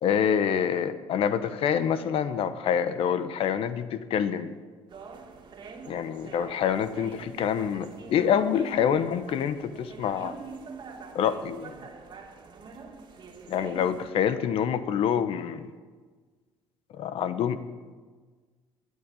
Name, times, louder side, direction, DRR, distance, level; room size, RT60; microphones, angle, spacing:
voice 1, 0.0-4.5 5.9-10.3 11.1-11.7 13.5-15.7 16.9-17.6, left 8 dB, 60° left, 12 dB, 1.0 m, -26 dB
sound 1, 4.9-14.1, right 4 dB, 45° right, 2.3 m, -44 dB
13.0 x 8.5 x 9.8 m, 1.4 s
supercardioid pair, 90°, 11 cm